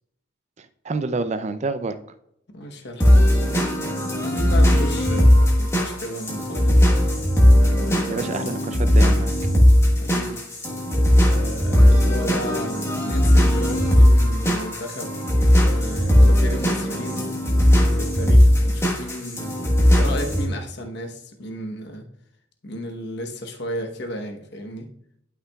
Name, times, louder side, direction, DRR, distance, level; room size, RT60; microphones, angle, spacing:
voice 1, 0.6-2.0 8.1-9.3, right 3 dB, 35° right, 11 dB, 0.4 m, -28 dB
voice 2, 2.5-3.5 4.2-6.8 7.6-8.4 10.0-10.4 11.3-15.1 15.6-17.2 17.9-19.5 19.9-22.0 22.6-24.9, left 1 dB, 55° left, 3 dB, 1.0 m, -34 dB
sound 1, 3.0-20.4, equal, 15° left, 1.3 m, -18 dB
11.0 x 5.8 x 2.3 m, 0.74 s
head